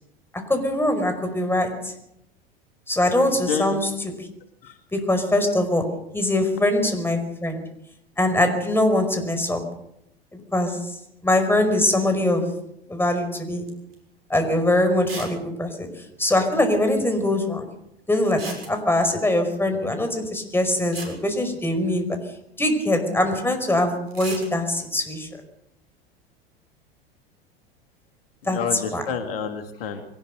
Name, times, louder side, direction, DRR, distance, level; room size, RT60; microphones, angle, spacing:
voice 1, 0.5-1.9 2.9-3.9 4.2-4.3 4.9-7.6 8.2-9.7 10.3-10.9 11.2-12.5 12.9-13.7 14.3-17.7 18.1-22.2 22.6-25.3 28.4-28.6 28.9-29.0, left 1 dB, 5° left, 6 dB, 5.1 m, -22 dB
voice 2, 3.4-3.8 4.6-4.8 28.4-30.0, left 6 dB, 65° left, 7 dB, 2.5 m, -29 dB
sound 1, 13.7-14.0 14.4-14.5 15.1-15.4 15.7-15.8 15.9-16.0 18.3-19.1 20.5-20.6 20.9-22.1 24.1-24.5, right 3 dB, 75° right, 6.7 m, -37 dB
23.0 x 19.0 x 6.6 m, 0.80 s
figure-of-eight pair, 80°, 30 cm